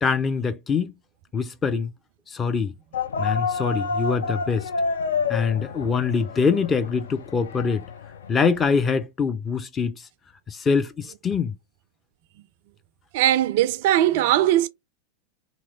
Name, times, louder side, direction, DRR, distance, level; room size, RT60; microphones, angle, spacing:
voice 1, 0.0-0.9 1.3-1.9 2.3-2.7 3.2-4.7 5.3-7.9 8.3-10.0 10.5-11.5, left 5 dB, 20° left, 0.6 m, -24 dB
sound 1, 2.9-8.8, left 4 dB, 65° left, 0.4 m, -29 dB
voice 2, 13.1-14.7, right 12 dB, 50° right, 0.3 m, -19 dB
3.0 x 3.0 x 3.6 m
figure-of-eight pair, 90°, 0 cm